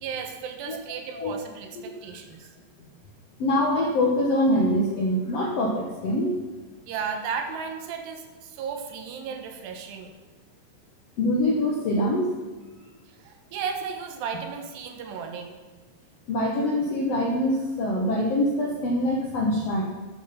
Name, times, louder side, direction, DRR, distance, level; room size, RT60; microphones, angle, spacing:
voice 1, 0.0-2.5 6.9-10.1 13.1-15.5, right 6 dB, 80° right, 5 dB, 3.3 m, -34 dB
voice 2, 3.4-6.4 11.2-12.3 16.3-19.8, left 1 dB, 70° left, -1 dB, 1.5 m, -24 dB
13.0 x 9.1 x 5.7 m, 1.3 s
omnidirectional pair, 4.9 m